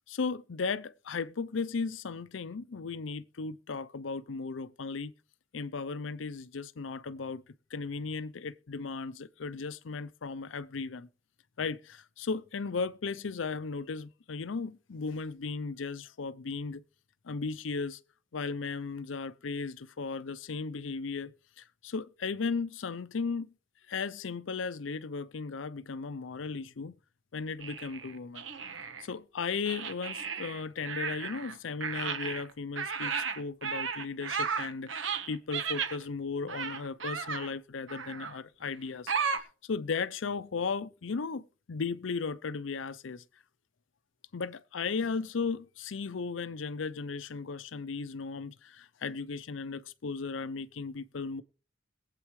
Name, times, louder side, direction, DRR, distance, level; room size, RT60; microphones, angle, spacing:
voice 1, 0.1-5.1 5.5-7.4 7.7-11.1 11.6-16.8 17.2-18.0 18.3-23.5 23.9-27.0 27.3-28.4 29.0-43.2 44.3-51.4, left 4 dB, 85° left, 0.6 m, -36 dB
sound 1, 27.6-29.1 29.7-31.5 31.8-36.0 36.5-37.5 37.9-38.4 39.1-39.4, right 6 dB, 90° right, 1.2 m, -34 dB
22.0 x 8.3 x 3.1 m
head